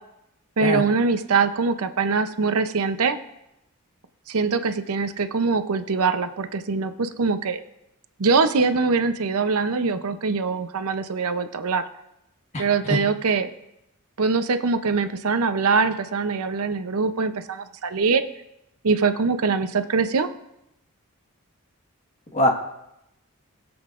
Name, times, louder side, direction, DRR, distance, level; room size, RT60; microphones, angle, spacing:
voice 1, 0.6-3.2 4.3-7.6 8.2-11.8 12.6-13.5 14.2-18.2 18.8-20.3, right 4 dB, 80° right, 9 dB, 0.7 m, -23 dB
voice 2, 12.5-13.0 22.3-22.5, left 1 dB, 30° left, 1 dB, 1.5 m, -22 dB
20.5 x 7.8 x 2.5 m, 0.85 s
head